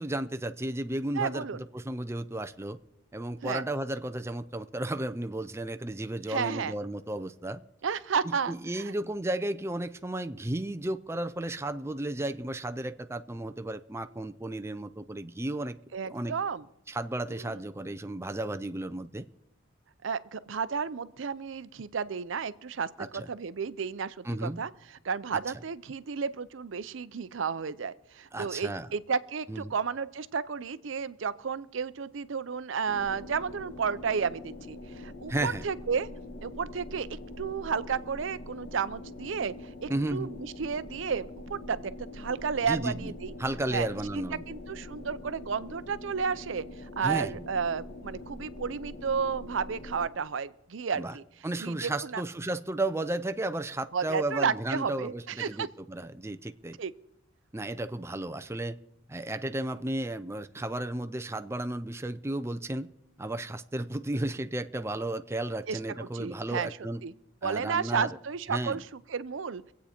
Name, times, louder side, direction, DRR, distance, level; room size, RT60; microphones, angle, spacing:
voice 1, 0.0-1.5 1.7-2.8 3.1-7.6 8.5-15.8 16.1-16.3 16.9-19.3 23.0-23.3 24.2-24.6 28.3-28.9 29.5-29.7 35.3-35.7 39.9-40.3 42.7-43.1 43.4-44.4 47.0-47.3 51.0-51.2 51.4-56.8 57.5-58.8 59.1-62.9 63.2-67.0 67.4-68.2 68.5-68.8, right 1 dB, 15° right, 9 dB, 0.5 m, -33 dB
voice 2, 1.2-1.6 3.4-3.6 6.3-6.7 7.8-8.9 15.9-16.6 17.3-17.5 20.0-24.7 25.0-36.1 36.4-37.1 37.4-39.5 39.8-43.3 43.7-43.9 44.1-46.6 47.0-51.2 51.6-52.2 53.9-55.7 56.8-56.9 65.7-67.1 67.4-69.7, right 6 dB, 70° right, 16 dB, 0.6 m, -32 dB
sound 1, 32.9-50.1, left 1 dB, 60° left, 1.5 m, -44 dB
24.5 x 8.4 x 4.4 m, 0.81 s
head